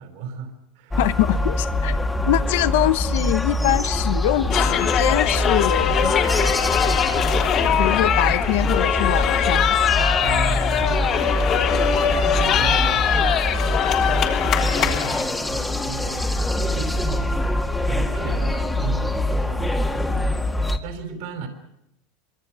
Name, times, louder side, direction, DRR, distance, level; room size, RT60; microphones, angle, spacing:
voice 1, 0.0-1.0 1.5-2.1 10.2-11.0 11.5-11.7 12.0-13.4 14.0-17.3 17.9-20.4 20.8-21.5, right 4 dB, 65° right, 6 dB, 4.4 m, -35 dB
sound 1, 0.9-20.8, left 1 dB, 10° left, 1.9 m, -24 dB
voice 2, 1.0-2.0 2.3-6.1 7.8-9.7, left 15 dB, 75° left, 13 dB, 1.0 m, -23 dB
sound 2, 4.5-15.2, left 8 dB, 40° left, 3.3 m, -22 dB
25.5 x 24.5 x 6.3 m, 0.82 s
supercardioid pair, 135°, 0 cm